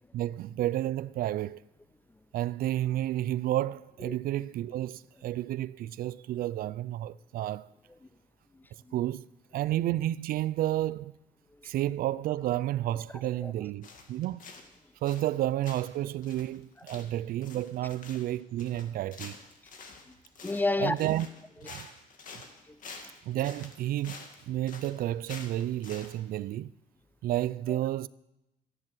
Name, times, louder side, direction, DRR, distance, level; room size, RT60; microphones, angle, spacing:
voice 1, 0.1-1.6 2.3-7.7 8.9-9.3 9.5-11.1 11.7-14.4 15.0-19.3 20.8-21.3 21.6-21.9 23.2-26.7 27.2-28.1, right 13 dB, 60° right, 0.4 m, -31 dB
voice 2, 8.5-9.0 11.5-11.7 13.4-13.5 16.9-17.0 20.1-20.2 20.4-21.0 21.6-21.7 22.7-22.8 27.7-27.8, left 2 dB, 10° left, 0.5 m, -32 dB
sound 1, 13.8-14.8 15.1-15.4 15.6-26.1, left 4 dB, 50° left, 2.0 m, -48 dB
13.0 x 10.5 x 6.1 m
cardioid pair, 110°, 17 cm